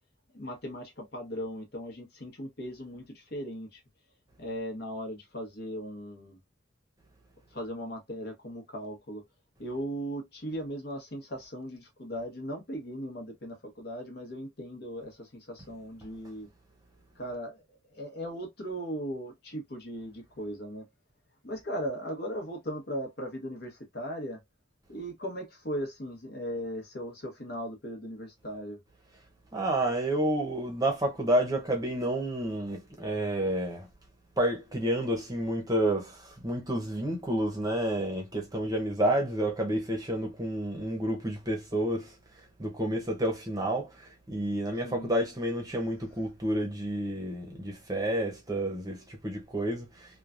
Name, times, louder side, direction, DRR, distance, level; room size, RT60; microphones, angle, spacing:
voice 1, 0.3-3.8 4.4-6.4 7.5-9.2 9.6-16.5 17.2-20.9 21.4-24.4 24.9-28.8 44.8-45.1, equal, 55° left, 1.0 m, -38 dB
voice 2, 29.5-33.9 34.4-42.1 42.6-50.2, right 1 dB, 20° right, 0.8 m, -30 dB
3.0 x 2.3 x 2.4 m
head